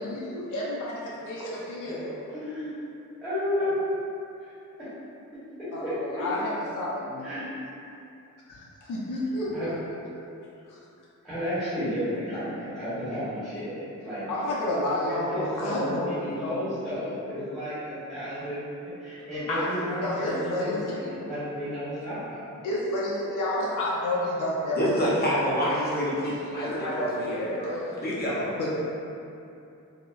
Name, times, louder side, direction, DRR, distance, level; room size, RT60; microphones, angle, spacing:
voice 1, 0.0-2.3 5.7-7.2 8.5-9.7 10.2-10.3 10.7-10.8 14.3-16.6 19.5-21.2 22.6-28.0 28.6-28.8, left 1 dB, 75° left, -6 dB, 0.6 m, -31 dB
voice 2, 2.3-2.7 3.2-3.9 4.4-4.5 5.8-6.2 7.2-7.5 9.5-9.7 11.2-14.3 15.1-18.6 19.0-22.4, equal, ahead, -17 dB, 1.1 m, -32 dB
voice 3, 24.8-28.6, equal, 30° left, -7 dB, 0.6 m, -28 dB
4.8 x 2.1 x 2.4 m, 2.6 s
wide cardioid pair, 170°, 31 cm